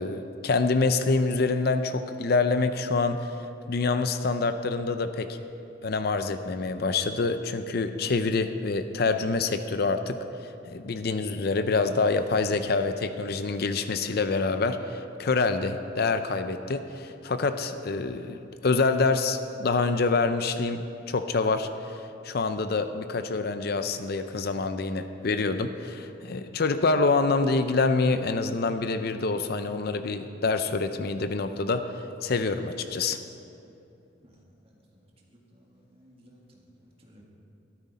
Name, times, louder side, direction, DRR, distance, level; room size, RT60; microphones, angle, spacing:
voice 1, 0.0-5.4 5.8-22.0 22.2-33.2, left 3 dB, 55° left, 9 dB, 0.5 m, -26 dB
voice 2, 34.2-37.3, equal, 30° right, -2 dB, 1.9 m, -58 dB
13.5 x 12.5 x 4.2 m, 2.8 s
head